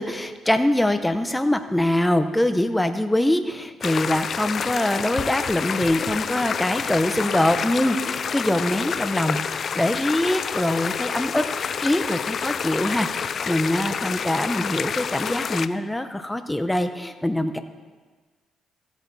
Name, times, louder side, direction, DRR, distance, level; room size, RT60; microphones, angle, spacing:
voice 1, 0.0-17.6, left 1 dB, 10° left, 9 dB, 0.8 m, -23 dB
sound 1, 3.8-15.7, left 7 dB, 50° left, 0.3 m, -28 dB
16.0 x 8.2 x 4.1 m, 1.4 s
cardioid pair, 90°, 0 cm